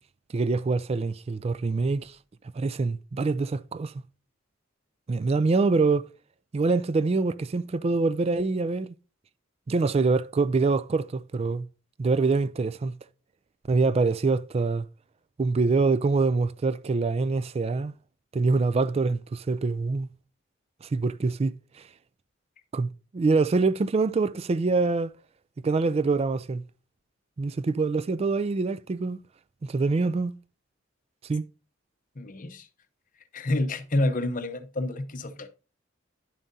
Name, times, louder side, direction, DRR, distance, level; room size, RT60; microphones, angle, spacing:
voice 1, 0.3-2.2 2.5-3.9 5.1-6.1 6.5-8.9 9.7-11.7 12.0-13.0 13.7-14.9 15.4-17.9 18.3-20.1 20.8-21.5 22.7-25.1 25.6-26.6 27.4-29.2 29.6-30.3 31.2-31.4, right 3 dB, 30° right, 0.3 m, -25 dB
voice 2, 32.2-32.7 33.3-35.5, left 1 dB, 40° left, 0.8 m, -28 dB
10.5 x 7.2 x 2.7 m
head